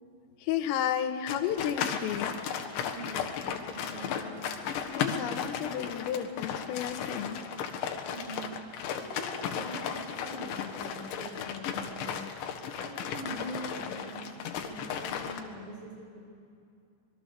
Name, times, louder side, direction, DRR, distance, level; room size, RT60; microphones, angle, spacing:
voice 1, 0.4-2.4 4.9-7.4, left 9 dB, 90° left, 8 dB, 4.0 m, -32 dB
sound 1, 1.3-15.4, left 7 dB, 70° left, 3.6 m, -35 dB
voice 2, 2.8-3.3 3.7-4.6 8.1-8.6 9.0-12.5 12.8-16.3, right 1 dB, 60° right, -3 dB, 7.9 m, -43 dB
26.0 x 23.0 x 6.8 m, 2.5 s
omnidirectional pair, 5.7 m